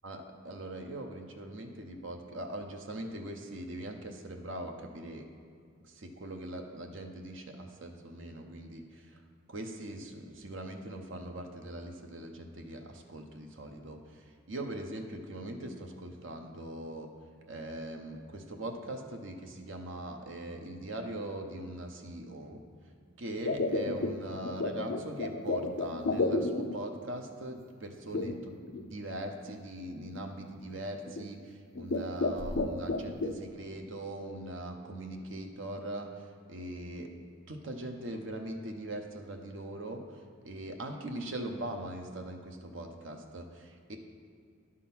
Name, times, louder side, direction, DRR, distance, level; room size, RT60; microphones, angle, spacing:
voice 1, 0.0-5.2 5.8-9.2 9.5-17.1 17.5-22.6 23.2-36.2 36.5-37.1 37.5-44.0, right 1 dB, 65° right, 4 dB, 0.8 m, -41 dB
sound 1, 23.4-27.0 28.1-28.8 29.5-29.6 30.1-30.4 31.1-31.4 31.8-33.3, left 2 dB, 60° left, 0.5 m, -32 dB
10.5 x 3.8 x 5.9 m, 2.3 s
head